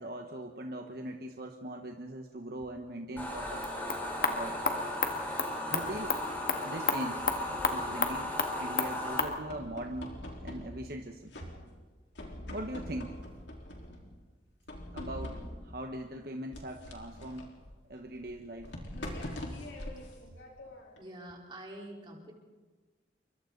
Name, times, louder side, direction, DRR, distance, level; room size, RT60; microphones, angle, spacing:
voice 1, 0.0-3.6 4.2-4.6 5.2-5.3 5.7-6.2 6.6-7.2 7.7-10.1 10.4-11.3 12.5-13.2 14.9-17.5 17.9-18.7, right 1 dB, 55° right, 3 dB, 1.3 m, -40 dB
sound 1, 3.2-9.2, left 1 dB, 10° left, 5.5 m, -37 dB
sound 2, 3.5-9.4, left 4 dB, 50° left, 1.9 m, -33 dB
sound 3, 5.3-6.6 7.1-8.4 8.8-11.0 11.3-11.9 12.1-14.1 14.7-15.8 16.5-21.0, left 1 dB, 85° left, 4.0 m, -44 dB
voice 2, 21.0-22.3, right 1 dB, 25° right, -1 dB, 4.2 m, -46 dB
29.0 x 24.0 x 4.0 m, 1.3 s
head